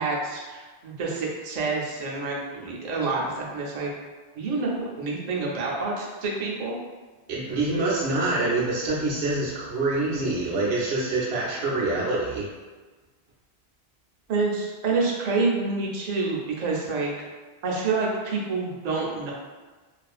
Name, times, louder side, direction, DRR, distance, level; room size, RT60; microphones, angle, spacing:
voice 1, 0.0-3.9 4.4-6.8 14.3-17.1 17.6-19.3, right 3 dB, 55° right, -2 dB, 0.5 m, -27 dB
voice 2, 7.3-12.5, right 2 dB, 80° right, -7 dB, 0.8 m, -26 dB
2.5 x 2.4 x 2.3 m, 1.3 s
omnidirectional pair, 1.1 m